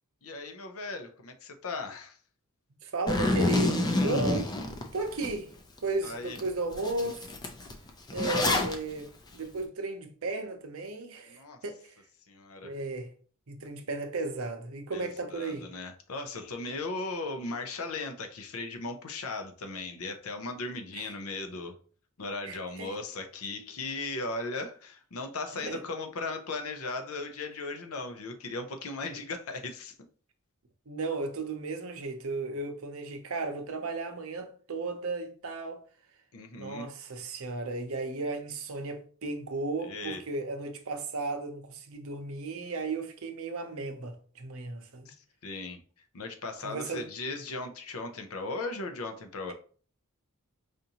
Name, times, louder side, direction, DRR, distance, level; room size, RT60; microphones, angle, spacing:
voice 1, 0.2-2.2 6.0-6.4 11.3-11.6 12.3-12.7 14.9-21.7 22.2-29.9 36.3-36.9 39.8-40.2 45.1-45.2 45.4-45.8 46.1-49.5, left 3 dB, 75° left, 0.6 m, -37 dB
voice 2, 2.8-4.5 4.9-5.5 5.8-7.2 8.1-9.1 9.3-11.9 12.6-13.1 13.5-15.7 20.9-21.1 22.4-22.9 25.5-25.8 30.9-35.8 36.6-45.1 46.6-47.0, right 3 dB, 70° right, 0.7 m, -35 dB
Zipper (clothing), 3.1-5.3 5.8-5.9 6.4-6.5 6.7-8.7, left 2 dB, 20° left, 0.4 m, -28 dB
5.0 x 2.6 x 2.8 m
head